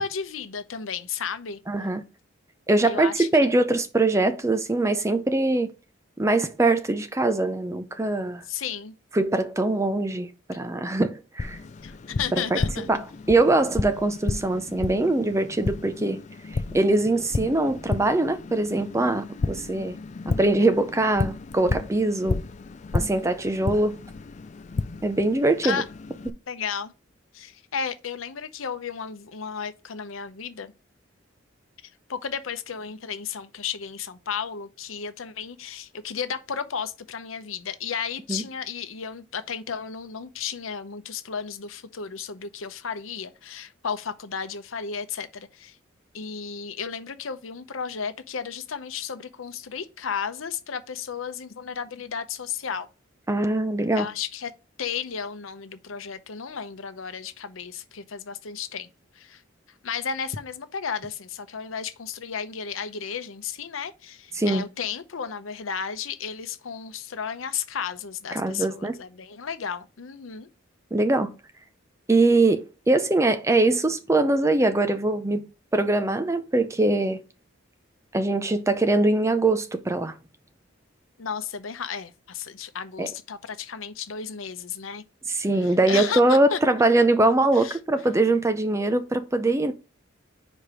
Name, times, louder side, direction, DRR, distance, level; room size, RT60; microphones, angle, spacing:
voice 1, 0.0-1.6 2.8-3.6 8.5-8.9 11.8-12.9 25.6-25.9 26.5-26.9 27.3-30.7 32.1-45.8 46.1-52.9 53.9-54.5 54.8-58.9 59.1-59.4 59.8-70.5 81.2-85.0 85.6-86.6 87.5-87.8, left 6 dB, 85° left, 0.7 m, -33 dB
voice 2, 1.7-2.0 2.7-5.7 6.2-8.4 9.1-11.6 12.5-12.6 12.9-13.0 13.3-16.2 16.7-20.0 20.3-22.4 22.9-23.9 25.0-25.8 38.3-38.4 53.3-54.1 64.4-64.7 68.3-69.0 70.9-71.3 72.1-75.4 75.7-77.2 78.1-80.1 83.0-83.1 85.3-89.7, right 2 dB, 15° right, 0.5 m, -22 dB
Tap, 11.4-26.3, left 3 dB, 35° left, 0.4 m, -32 dB
5.1 x 4.2 x 4.8 m
head